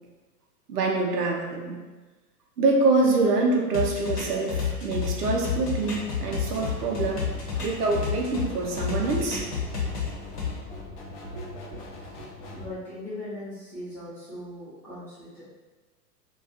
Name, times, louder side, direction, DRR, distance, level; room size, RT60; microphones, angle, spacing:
voice 1, 0.7-1.7 2.6-7.2 7.6-9.4 11.3-11.5, right 3 dB, 75° right, -1 dB, 0.6 m, -25 dB
sound 1, 3.7-8.5 8.8-10.5, left 6 dB, 75° left, 0.8 m, -30 dB
sound 2, 5.8-12.7, left 2 dB, 45° left, 0.6 m, -41 dB
voice 2, 12.5-15.4, left 1 dB, 5° left, -13 dB, 0.6 m, -39 dB
2.3 x 2.2 x 2.6 m, 1.2 s
figure-of-eight pair, 100°, 48 cm